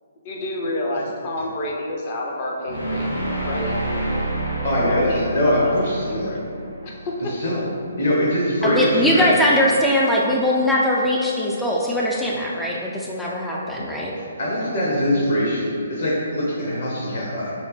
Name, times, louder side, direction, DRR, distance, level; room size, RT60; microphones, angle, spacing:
voice 1, 0.2-3.1 3.4-3.8 4.8-5.3 5.6-5.8 6.2-6.4 6.8-7.4, left 1 dB, 35° left, -2 dB, 0.7 m, -28 dB
sound 1, 2.6-7.7, right 2 dB, 80° left, 1.3 m, -28 dB
voice 2, 4.6-6.3 7.4-7.6 8.0-9.3 14.4-17.5, equal, 55° left, -5 dB, 1.4 m, -22 dB
voice 3, 8.6-14.2, equal, 5° left, -4 dB, 0.4 m, -21 dB
6.2 x 2.1 x 3.3 m, 2.3 s
figure-of-eight pair, 135°, 0 cm